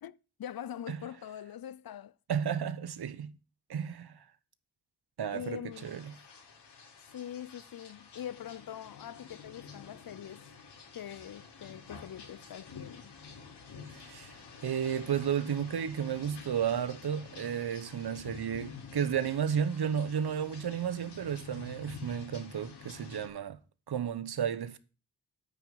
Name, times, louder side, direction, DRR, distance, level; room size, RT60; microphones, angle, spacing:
voice 1, 0.0-2.1 5.3-6.0 7.1-10.4 10.9-13.1, left 10 dB, 60° left, 0.6 m, -43 dB
voice 2, 2.3-3.3 3.7-4.2 5.2-6.1 13.9-14.3 14.6-23.6 23.9-24.8, right 8 dB, 70° right, 1.0 m, -33 dB
sound 1, 5.7-23.3, left 5 dB, 85° left, 3.6 m, -49 dB
9.1 x 6.3 x 7.8 m
cardioid pair, 75°, 39 cm